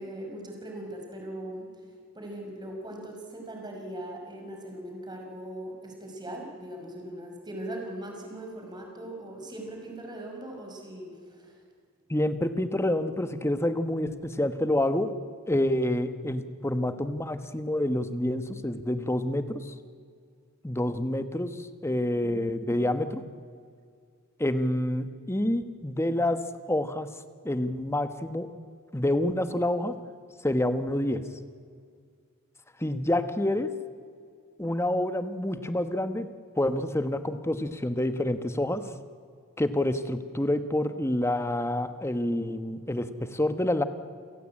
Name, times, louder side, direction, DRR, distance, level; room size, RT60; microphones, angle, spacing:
voice 1, 0.0-1.7 2.1-11.6, right 1 dB, 20° right, 1 dB, 5.7 m, -40 dB
voice 2, 12.1-15.1 15.5-19.7 20.6-23.2 24.4-26.4 26.7-27.1 27.4-28.5 28.9-29.9 30.4-31.2 32.8-33.7 34.6-36.3 36.6-38.8 39.6-43.8, left 1 dB, 10° left, 10 dB, 1.2 m, -28 dB
29.0 x 17.5 x 8.8 m, 2.2 s
head